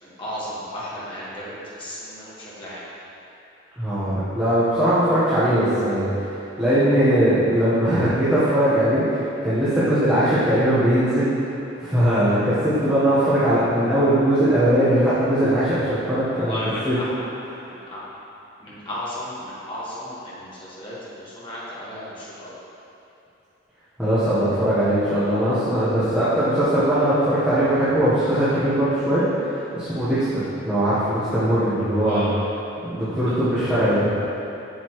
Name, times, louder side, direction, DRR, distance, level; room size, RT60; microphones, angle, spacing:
voice 1, 0.0-2.8 16.3-17.3 17.6-18.0 18.6-20.5 20.8-22.5 32.0-32.3 33.2-33.4, left 1 dB, 25° left, -9 dB, 1.7 m, -34 dB
voice 2, 3.8-6.3 6.6-11.3 11.8-16.6 16.8-17.0 24.0-32.3 32.8-34.1, right 1 dB, 5° right, -14 dB, 1.2 m, -20 dB
7.6 x 6.8 x 3.1 m, 2.8 s
head